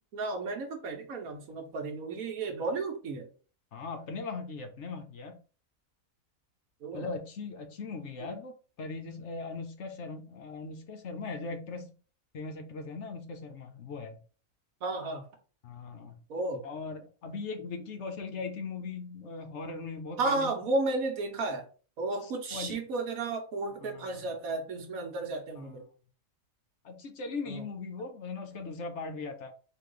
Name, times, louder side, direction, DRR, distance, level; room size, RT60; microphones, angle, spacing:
voice 1, 0.1-3.3 6.8-7.1 8.2-8.3 14.8-15.2 16.3-16.6 20.2-21.6 22.0-25.8 27.5-27.6, right 3 dB, 80° right, 1.4 m, -33 dB
voice 2, 3.7-5.4 6.9-11.9 12.3-14.2 15.6-16.2 16.6-20.5 22.2-22.8 23.8-24.3 26.8-29.5, left 4 dB, 60° left, 1.0 m, -39 dB
3.9 x 3.1 x 3.8 m
omnidirectional pair, 1.4 m